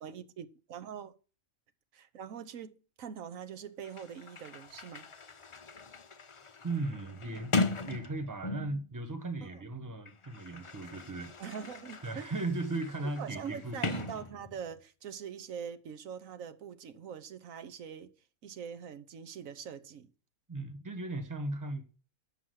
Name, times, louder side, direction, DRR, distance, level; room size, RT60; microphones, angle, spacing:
voice 1, 0.0-1.1 1.9-5.1 9.4-9.6 11.4-12.3 13.0-18.1 18.4-20.1, right 7 dB, 70° right, 1.3 m, -43 dB
Sliding door, 3.5-3.6 3.8-8.9 9.8-14.8, left 3 dB, 45° left, 0.4 m, -38 dB
voice 2, 6.6-7.5 7.8-11.3 12.0-14.1 20.5-21.8, right 2 dB, 15° right, 1.2 m, -37 dB
7.2 x 6.0 x 7.7 m
omnidirectional pair, 1.5 m